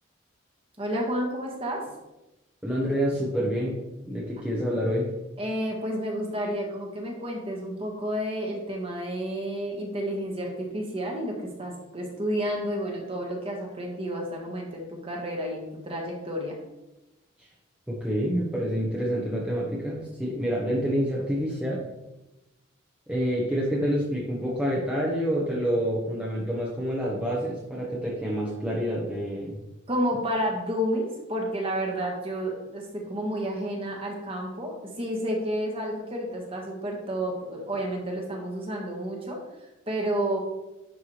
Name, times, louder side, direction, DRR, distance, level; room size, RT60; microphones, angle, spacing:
voice 1, 0.8-1.8 5.4-16.6 29.9-39.4 39.9-40.4, equal, 25° right, 0 dB, 1.5 m, -30 dB
voice 2, 2.6-3.8 4.1-5.1 17.9-21.8 23.1-29.6, equal, 5° right, -5 dB, 1.1 m, -27 dB
11.0 x 4.7 x 3.3 m, 0.99 s
head